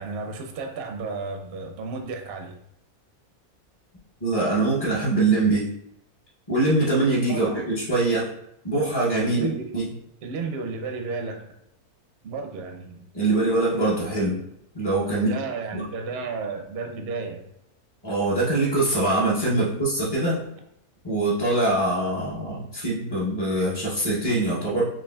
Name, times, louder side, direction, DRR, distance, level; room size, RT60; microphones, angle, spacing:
voice 1, 0.0-2.6 7.3-7.6 9.2-9.7 10.2-11.5 12.2-13.0 15.1-17.4 19.6-19.7, right 4 dB, 65° right, 4 dB, 0.6 m, -33 dB
voice 2, 4.2-5.6 6.5-8.3 8.6-9.5 9.7-9.9 13.1-14.4 14.7-15.3 15.7-15.8 18.0-20.4 21.0-24.9, right 2 dB, 30° left, -7 dB, 0.4 m, -23 dB
5.8 x 2.4 x 2.2 m, 0.78 s
omnidirectional pair, 1.6 m